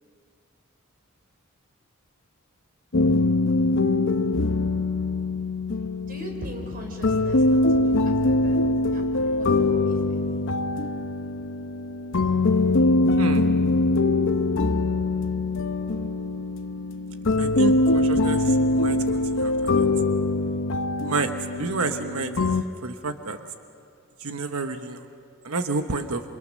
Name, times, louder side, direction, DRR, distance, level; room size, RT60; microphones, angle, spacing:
sound 1, 2.9-22.6, left 2 dB, 60° left, 0.9 m, -23 dB
voice 1, 5.8-8.6 8.9-10.4, right 1 dB, 45° right, 3 dB, 4.3 m, -41 dB
voice 2, 13.2-13.5 17.4-19.9 21.0-22.5 22.8-23.4 24.2-25.0 25.4-26.2, right 3 dB, 80° right, 7 dB, 1.2 m, -30 dB
28.0 x 26.0 x 6.5 m, 2.5 s
head